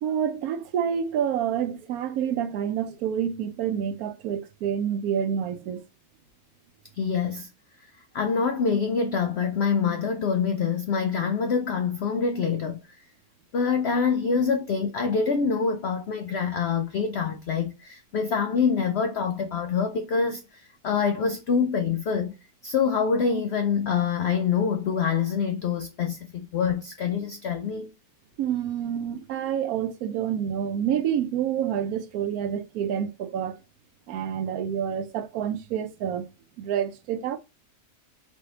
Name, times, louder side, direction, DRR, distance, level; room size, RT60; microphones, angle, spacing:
voice 1, 0.0-5.8 28.4-33.6 34.1-36.3 36.6-37.4, right 9 dB, 75° right, 1.0 m, -28 dB
voice 2, 6.9-7.5 8.1-13.0 13.5-22.4 22.6-27.9, left 6 dB, 75° left, 0.6 m, -25 dB
4.1 x 3.5 x 2.8 m
omnidirectional pair, 1.6 m